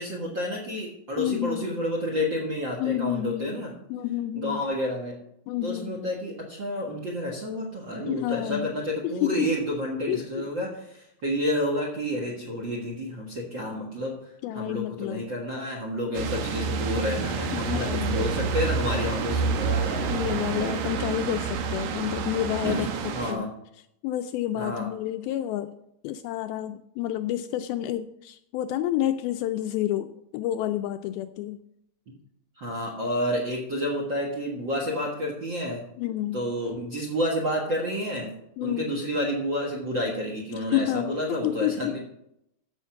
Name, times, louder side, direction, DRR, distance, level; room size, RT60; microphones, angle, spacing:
voice 1, 0.0-3.7 4.4-5.1 5.6-14.1 14.5-20.1 22.6-22.9 23.1-23.5 24.5-24.8 32.6-35.8 36.3-38.3 38.6-42.0, equal, 50° right, 0 dB, 1.4 m, -30 dB
voice 2, 1.2-1.8 2.8-4.7 5.5-6.0 8.0-8.7 9.0-9.5 10.1-10.5 14.4-15.3 17.5-18.2 20.1-23.5 24.0-25.7 26.0-31.6 36.0-36.4 38.6-39.0 40.5-42.0, left 12 dB, 85° left, 9 dB, 2.2 m, -29 dB
sound 1, 16.1-23.3, right 5 dB, 85° right, 3.2 m, -28 dB
14.0 x 5.7 x 5.8 m, 0.78 s
omnidirectional pair, 4.6 m